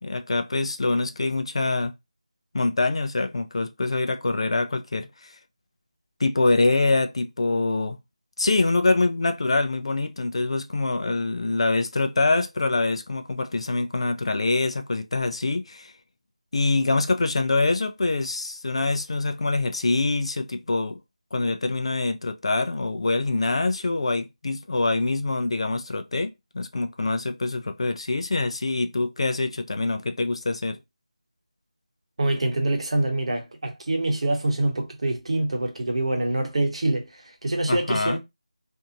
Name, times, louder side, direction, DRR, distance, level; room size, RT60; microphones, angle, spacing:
voice 1, 0.0-1.9 2.5-5.3 6.2-8.0 8.4-15.9 16.5-21.0 21.3-30.8 37.7-38.2, left 3 dB, 55° left, 0.4 m, -25 dB
voice 2, 32.2-38.2, right 1 dB, 60° right, 0.9 m, -25 dB
2.7 x 2.6 x 2.5 m
figure-of-eight pair, 170°, 4 cm